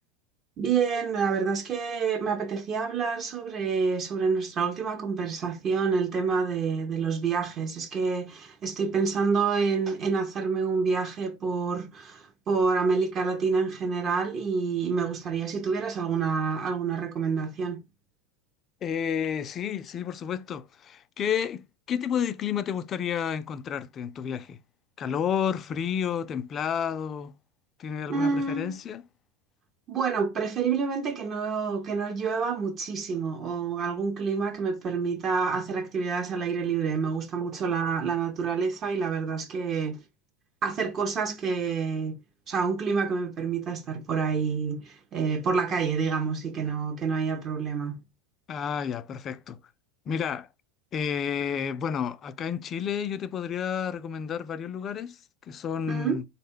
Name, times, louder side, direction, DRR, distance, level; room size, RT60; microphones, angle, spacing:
voice 1, 0.6-17.8 28.1-28.8 29.9-40.0 40.6-42.2 42.5-48.0 55.9-56.2, right 5 dB, 40° right, 0.5 m, -28 dB
voice 2, 18.8-24.6 25.0-27.3 27.8-29.0 48.5-49.6 50.1-50.5 50.9-56.3, left 8 dB, 35° left, 0.3 m, -31 dB
3.9 x 2.1 x 3.5 m
hypercardioid pair, 100°, 0 cm